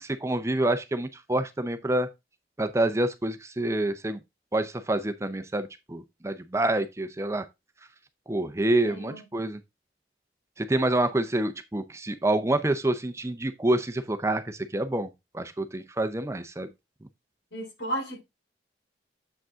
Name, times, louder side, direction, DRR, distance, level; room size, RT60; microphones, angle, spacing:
voice 1, 0.0-2.1 2.6-4.2 4.5-7.4 8.3-9.6 10.6-16.7, right 1 dB, 15° right, 0.6 m, -27 dB
voice 2, 8.8-9.2 17.5-18.2, right 1 dB, 80° left, 3.1 m, -33 dB
7.5 x 5.2 x 3.6 m
head